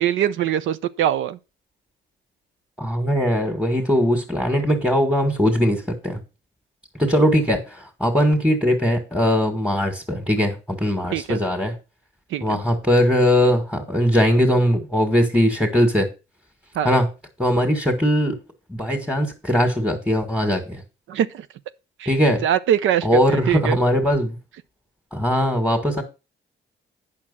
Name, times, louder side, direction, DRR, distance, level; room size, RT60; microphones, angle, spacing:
voice 1, 0.0-1.4 11.1-11.4 12.3-12.6 16.7-16.9 21.1-21.5 22.0-22.1 22.4-23.8, right 10 dB, 80° right, 0.7 m, -22 dB
voice 2, 2.8-6.2 7.0-11.7 12.4-16.1 16.8-17.1 17.4-18.4 18.7-20.8 22.1-22.4 23.0-24.4 25.1-26.0, equal, 5° right, 2.1 m, -20 dB
8.8 x 6.1 x 5.6 m
cardioid pair, 90°, 20 cm